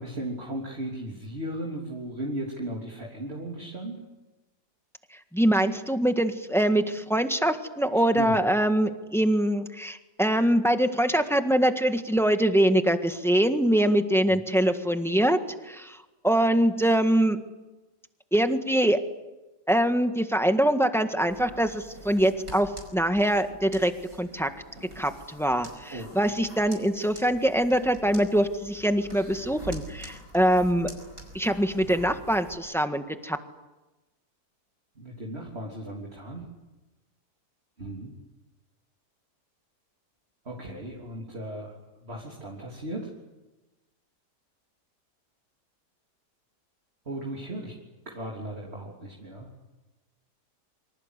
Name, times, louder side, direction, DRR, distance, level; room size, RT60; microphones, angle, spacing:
voice 1, 0.0-4.1 7.9-8.4 14.3-14.4 25.9-26.1 35.0-36.5 37.8-38.1 40.5-43.1 47.1-47.8 48.1-49.5, right 1 dB, 35° right, -1 dB, 3.7 m, -36 dB
voice 2, 5.3-15.4 15.6-16.0 16.2-17.4 18.3-19.0 19.7-23.9 24.2-24.5 24.9-30.9 31.3-33.4, right 1 dB, ahead, 7 dB, 1.5 m, -23 dB
sound 1, 21.3-32.5, right 1 dB, 55° right, 5.8 m, -45 dB
27.0 x 25.0 x 8.3 m, 1.1 s
omnidirectional pair, 1.8 m